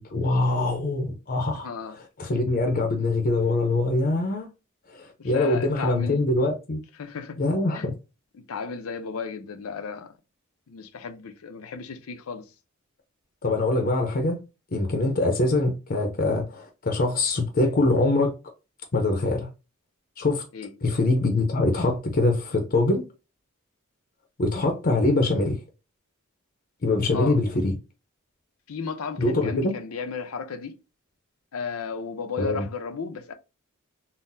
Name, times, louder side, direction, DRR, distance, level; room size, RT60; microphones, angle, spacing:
voice 1, 0.0-1.7 2.2-4.5 4.9-6.8 7.4-7.9 13.4-14.4 14.7-18.3 18.9-19.5 20.2-20.4 20.8-23.0 24.4-25.6 26.8-27.7 29.2-29.7 32.4-32.7, left 2 dB, 45° left, 0.6 m, -23 dB
voice 2, 1.6-2.0 5.2-6.3 7.0-7.4 7.7-7.9 8.3-10.2 10.7-12.5 20.5-20.7 27.1-27.4 28.7-30.8 31.5-33.3, left 5 dB, 85° left, 0.6 m, -34 dB
3.8 x 2.0 x 2.6 m
head